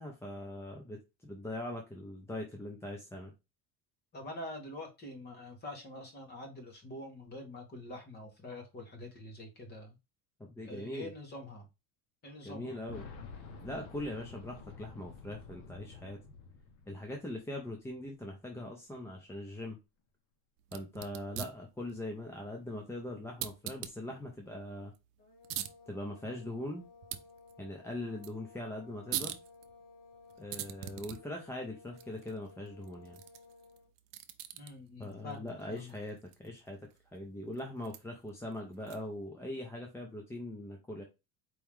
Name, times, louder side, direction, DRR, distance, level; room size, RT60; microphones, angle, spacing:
voice 1, 0.0-3.3 10.4-11.1 12.4-13.1 13.6-16.2 16.9-19.8 20.7-24.9 25.9-26.8 27.6-29.4 30.4-33.2 35.0-36.8 37.1-41.0, left 1 dB, 5° left, 0.7 m, -41 dB
voice 2, 4.1-9.9 10.6-11.7 12.2-12.8 34.5-35.9, left 1 dB, 25° left, 1.6 m, -45 dB
Boom, 12.9-17.6 17.9-18.0 19.1-19.2, left 5 dB, 50° left, 1.1 m, -49 dB
sound 1, 20.6-39.3, right 13 dB, 60° right, 0.7 m, -46 dB
sound 2, 25.2-33.9, left 4 dB, 85° left, 2.9 m, -57 dB
4.6 x 3.0 x 3.6 m
cardioid pair, 155°, 37 cm